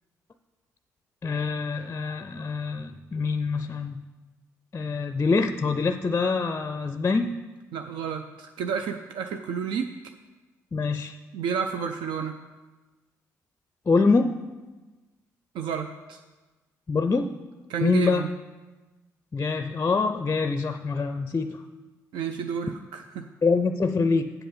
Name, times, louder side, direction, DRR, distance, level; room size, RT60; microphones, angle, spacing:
voice 1, 1.2-4.0 4.7-7.4 10.7-11.2 13.9-14.3 16.9-17.3 17.8-18.3 19.3-21.6 23.4-24.3, left 4 dB, 25° left, 10 dB, 0.5 m, -25 dB
voice 2, 7.7-9.9 11.3-12.4 15.5-16.2 17.7-18.3 22.1-23.3, right 6 dB, 65° right, 6 dB, 0.4 m, -31 dB
7.7 x 7.4 x 5.2 m, 1.2 s
hypercardioid pair, 40°, 9 cm